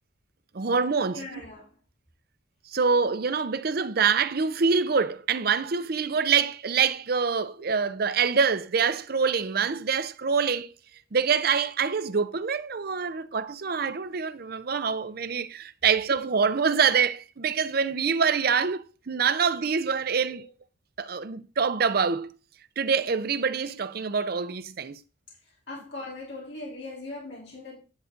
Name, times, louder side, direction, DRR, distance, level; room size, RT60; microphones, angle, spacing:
voice 1, 0.5-1.3 2.7-10.7 11.1-20.4 21.0-22.3 22.8-25.0, right 5 dB, 50° right, 0.6 m, -25 dB
voice 2, 1.1-1.7 20.3-20.4 25.7-27.7, left 2 dB, 60° left, 3.3 m, -39 dB
10.0 x 6.7 x 3.7 m
head